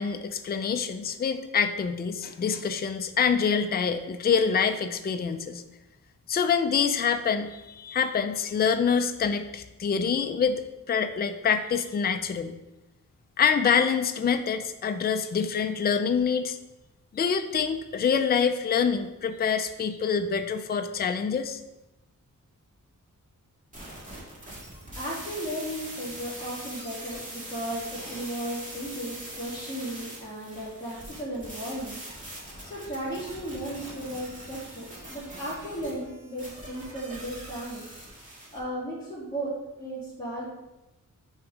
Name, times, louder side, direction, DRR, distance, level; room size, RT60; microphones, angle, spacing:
voice 1, 0.0-5.6 6.3-12.5 13.4-16.6 17.1-21.6, left 6 dB, 30° left, 8 dB, 0.4 m, -26 dB
sound 1, 23.7-38.6, right 1 dB, 25° right, 1.7 m, -42 dB
voice 2, 24.9-32.0 32.6-37.8 38.5-40.5, right 1 dB, 10° left, -8 dB, 2.3 m, -35 dB
6.5 x 3.6 x 4.8 m, 0.99 s
wide cardioid pair, 150°, 33 cm